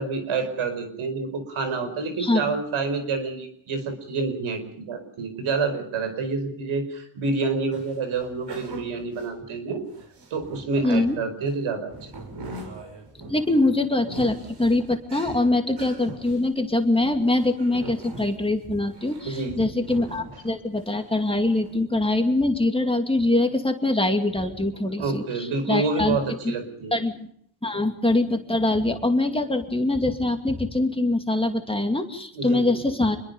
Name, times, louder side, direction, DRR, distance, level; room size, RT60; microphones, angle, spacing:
voice 1, 0.0-9.8 10.3-11.9 12.4-12.5 19.2-19.7 25.0-27.0 27.7-27.8 32.3-32.8, right 4 dB, 80° right, 8 dB, 5.0 m, -28 dB
voice 2, 2.2-2.5 10.8-11.2 13.3-26.2 26.9-27.2 27.6-33.2, left 2 dB, 10° left, 4 dB, 2.5 m, -23 dB
sound 1, 7.7-11.0 11.5-21.1 21.4-21.7, right 2 dB, 55° right, 6.2 m, -41 dB
26.5 x 22.0 x 5.4 m, 0.67 s
cardioid pair, 110°, 48 cm